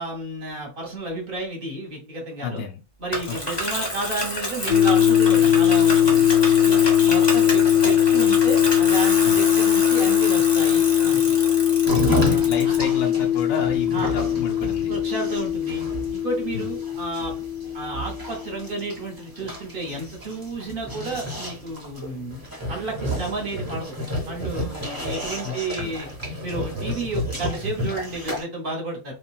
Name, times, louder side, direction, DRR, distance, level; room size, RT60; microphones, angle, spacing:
voice 1, 0.0-2.6 3.0-6.2 6.6-11.2 12.0-12.8 13.9-14.2 14.9-15.8 16.1-17.4 17.7-23.9 24.3-26.1 26.4-29.1, right 2 dB, 45° right, 1 dB, 0.9 m, -32 dB
voice 2, 2.4-2.8 3.3-3.4 9.2-9.4 12.1-14.9 16.5-16.7 25.4-25.5 25.8-25.9, left 6 dB, 65° left, 1 dB, 0.8 m, -31 dB
Bicycle, 3.1-12.8, left 1 dB, 30° left, 0.5 m, -29 dB
sound 1, 4.7-18.7, left 10 dB, 85° left, 1.1 m, -20 dB
sound 2, 11.8-28.4, equal, 20° right, 0.6 m, -31 dB
2.9 x 2.4 x 2.3 m, 0.32 s
omnidirectional pair, 1.6 m